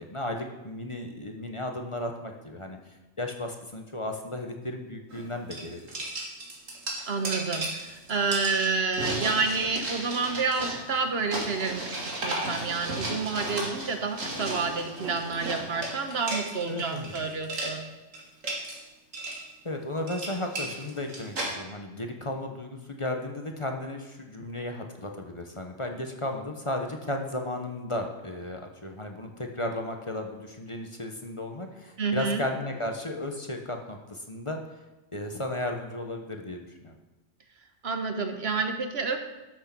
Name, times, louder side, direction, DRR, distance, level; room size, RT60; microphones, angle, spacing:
voice 1, 0.0-5.9 16.7-17.1 19.6-34.6 35.1-36.9, left 1 dB, 25° left, 3 dB, 1.0 m, -34 dB
sound 1, 5.1-5.2 5.5-17.2 17.4-17.7 18.1-18.8 19.1-19.4 19.9-21.5, right 2 dB, 80° right, 2.7 m, -34 dB
voice 2, 7.1-17.8 32.0-32.4 37.8-39.2, right 4 dB, 55° right, 6 dB, 1.4 m, -29 dB
12.5 x 6.5 x 6.0 m, 1.1 s
omnidirectional pair, 1.3 m